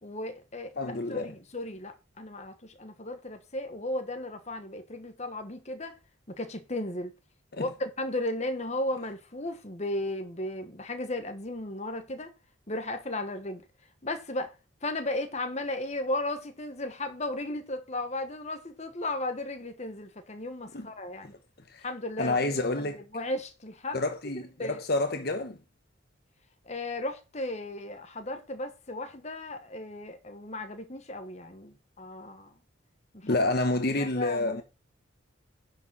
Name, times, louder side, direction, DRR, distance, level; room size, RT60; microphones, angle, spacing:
voice 1, 0.0-6.0 6.3-7.1 7.6-12.3 12.7-13.6 14.0-14.5 14.8-21.3 21.8-24.8 26.7-32.5 33.1-33.4 33.9-34.6, left 1 dB, 35° left, 1.3 m, -35 dB
voice 2, 0.8-1.3 7.5-7.7 20.7-20.9 21.2-21.4 21.7-21.8 22.2-23.0 23.9-25.6 33.2-34.6, left 2 dB, 50° left, 1.1 m, -29 dB
10.5 x 5.0 x 5.6 m
head